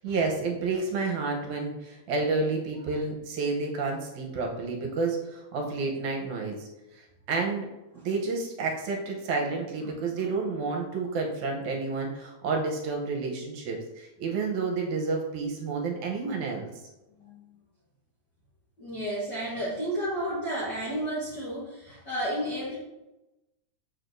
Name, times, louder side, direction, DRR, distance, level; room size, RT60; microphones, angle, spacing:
voice 1, 0.0-6.7 7.0-7.7 8.0-16.7, right 4 dB, 70° right, 0 dB, 2.2 m, -30 dB
voice 2, 18.8-22.8, equal, 50° left, -8 dB, 1.3 m, -32 dB
6.6 x 6.2 x 2.6 m, 0.99 s
omnidirectional pair, 3.7 m